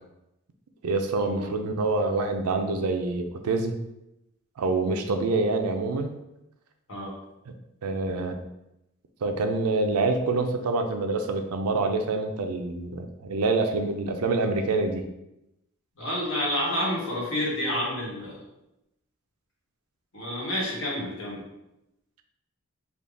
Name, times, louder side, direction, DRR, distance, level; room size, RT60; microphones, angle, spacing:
voice 1, 0.8-3.8 4.6-6.2 7.5-7.6 7.8-8.4 9.2-15.1, right 3 dB, 90° right, 6 dB, 0.4 m, -26 dB
voice 2, 16.0-18.4 20.1-21.4, left 1 dB, 60° left, -5 dB, 1.3 m, -29 dB
3.6 x 2.3 x 3.6 m, 0.88 s
head